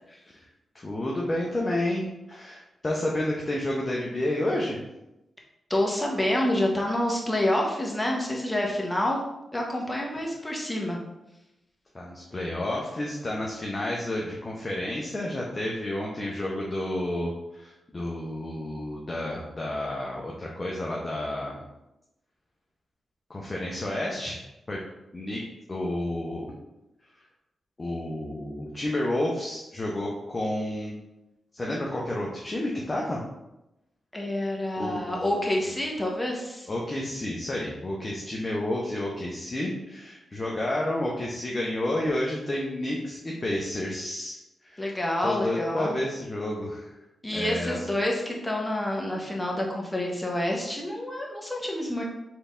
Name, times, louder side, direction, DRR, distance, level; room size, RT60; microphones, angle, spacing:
voice 1, 0.7-4.8 11.9-21.7 23.3-24.4 24.7-24.8 25.1-25.4 25.7-26.5 27.8-31.0 31.5-33.2 34.8-35.4 36.7-44.8 45.2-47.0 47.3-47.8, left 1 dB, 35° left, -3 dB, 0.8 m, -30 dB
voice 2, 5.7-9.2 9.5-11.0 34.1-36.7 44.8-46.0 47.2-52.0, left 1 dB, 15° left, -1 dB, 1.1 m, -28 dB
4.5 x 3.4 x 2.6 m, 0.92 s
supercardioid pair, 50°, 0 cm